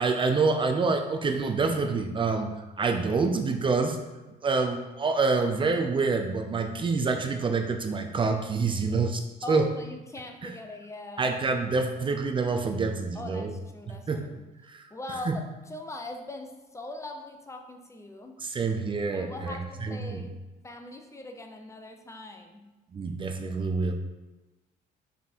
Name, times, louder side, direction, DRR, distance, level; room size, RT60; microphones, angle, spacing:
voice 1, 0.0-4.0 4.4-9.2 9.5-9.7 10.4-10.5 11.2-13.5 14.1-14.3 14.7-14.8 15.3-15.4 18.4-20.2 22.9-23.9, right 4 dB, 30° right, 5 dB, 0.6 m, -27 dB
voice 2, 9.4-11.3 13.1-14.1 14.9-18.4 19.1-20.4 20.6-22.7, left 2 dB, 15° left, 4 dB, 0.7 m, -41 dB
5.9 x 4.2 x 4.4 m, 1.1 s
cardioid pair, 110°, 17 cm